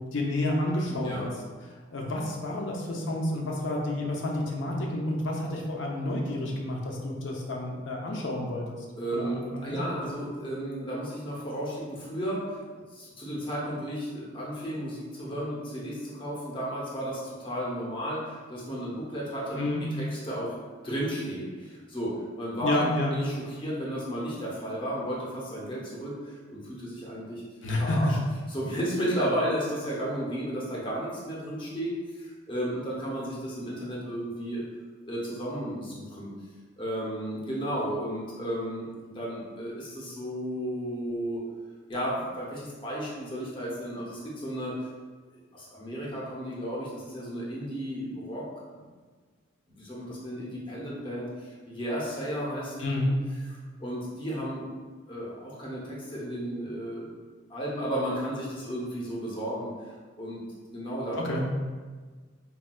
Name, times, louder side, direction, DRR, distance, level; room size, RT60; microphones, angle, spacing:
voice 1, 0.1-1.3 1.9-8.8 9.1-10.0 19.6-19.8 22.6-23.1 27.6-28.1 52.8-53.1 61.2-61.4, left 1 dB, 70° left, -1 dB, 0.6 m, -29 dB
voice 2, 0.9-1.3 9.0-12.6 12.9-19.6 19.9-20.6 20.8-27.4 27.8-28.2 28.5-34.6 35.1-36.3 36.8-38.9 39.1-41.4 41.9-44.7 45.5-48.5 48.7-48.8 49.7-53.1 53.5-54.6 55.1-57.1 57.5-59.7 60.2-61.2, equal, 25° left, -5 dB, 0.6 m, -33 dB
4.1 x 2.2 x 2.2 m, 1.4 s
head